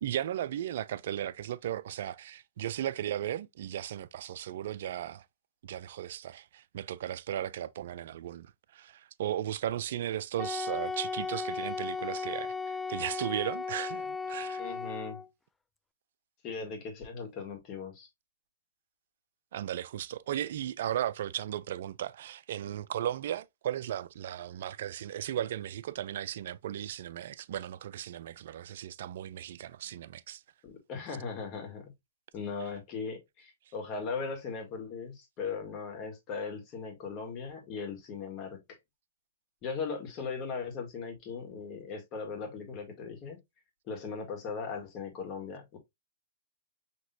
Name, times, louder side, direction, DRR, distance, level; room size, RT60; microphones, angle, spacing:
voice 1, 0.0-5.2 5.6-14.6 19.5-30.4, right 11 dB, 60° right, 0.4 m, -36 dB
Wind instrument woodwind instrument, 10.4-15.3, left 4 dB, 10° left, 0.3 m, -36 dB
voice 2, 14.6-15.2 16.4-18.1 30.6-31.9 32.3-38.6 39.6-43.4 43.9-45.8, left 5 dB, 35° left, 1.7 m, -38 dB
5.9 x 2.9 x 2.7 m
hypercardioid pair, 130°, 0 cm